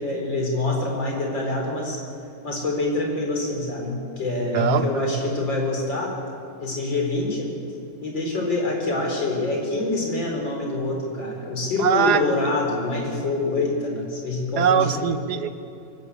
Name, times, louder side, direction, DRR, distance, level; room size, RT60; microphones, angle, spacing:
voice 1, 0.0-2.0 2.4-6.2 6.6-7.5 8.0-14.9, left 2 dB, 80° left, 0 dB, 4.9 m, -25 dB
voice 2, 4.5-4.8 11.8-12.2 14.6-15.6, right 8 dB, 65° right, 10 dB, 1.5 m, -21 dB
24.5 x 13.0 x 8.4 m, 2.4 s
omnidirectional pair, 2.0 m